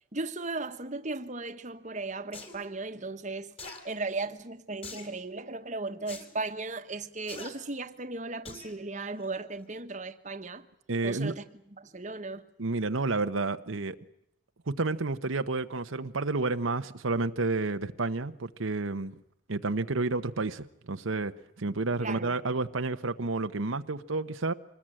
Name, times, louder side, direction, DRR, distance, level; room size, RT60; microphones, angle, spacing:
voice 1, 0.1-10.7 11.0-11.5 11.8-12.4 22.0-22.3, right 3 dB, 35° right, 1.3 m, -36 dB
sound 1, 2.3-2.6 3.6-3.8 4.8-5.1 6.1-6.3 7.3-7.5 8.4-8.7 9.2-9.3, left 3 dB, 30° left, 3.7 m, -43 dB
voice 2, 10.9-11.3 12.6-14.0 14.7-19.1 19.5-24.5, right 3 dB, 80° right, 1.0 m, -30 dB
26.0 x 20.5 x 8.9 m
head